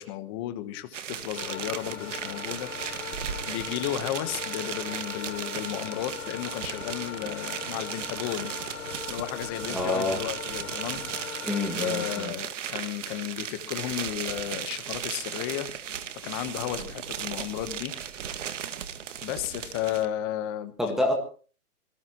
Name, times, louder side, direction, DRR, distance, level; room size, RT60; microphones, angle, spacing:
voice 1, 0.0-8.5 9.1-11.5 11.8-15.7 16.2-17.9 18.6-18.7 19.2-20.7, left 12 dB, 15° left, 11 dB, 1.0 m, -34 dB
sound 1, 0.9-20.1, right 9 dB, 55° right, 1.9 m, -36 dB
sound 2, 1.3-12.3, left 8 dB, 55° left, 7.3 m, -40 dB
voice 2, 9.7-10.2 11.4-12.3 20.8-21.1, left 1 dB, ahead, -2 dB, 1.6 m, -27 dB
25.5 x 19.0 x 3.0 m, 0.40 s
hypercardioid pair, 165°, 45 cm